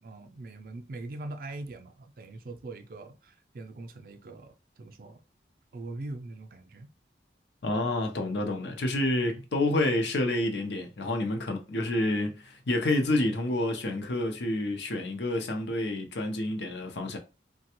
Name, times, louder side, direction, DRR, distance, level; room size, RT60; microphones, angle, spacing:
voice 1, 0.0-5.2 5.7-6.9, right 2 dB, 55° right, 0.4 m, -42 dB
voice 2, 7.6-17.2, left 1 dB, 80° left, 0.6 m, -28 dB
3.2 x 2.2 x 2.9 m
head